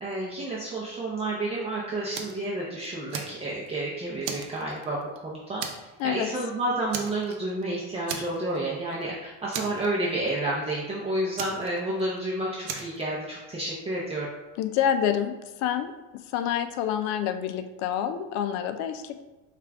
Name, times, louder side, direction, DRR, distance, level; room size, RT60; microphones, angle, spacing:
voice 1, 0.0-5.0 5.2-5.6 6.0-14.3, right 1 dB, 20° right, -5 dB, 0.6 m, -30 dB
Fire, 2.1-2.4 2.8-3.8 4.2-5.2 5.6-6.0 6.3-6.4 6.9-7.6 8.1-8.6 8.9-9.0 9.5-10.3 11.4-12.2 12.6-13.0, right 6 dB, 75° right, 0.7 m, -36 dB
voice 2, 14.6-15.9 16.3-19.2, left 9 dB, 60° left, 9 dB, 0.5 m, -27 dB
4.8 x 2.4 x 3.4 m, 1.1 s
supercardioid pair, 125°, 32 cm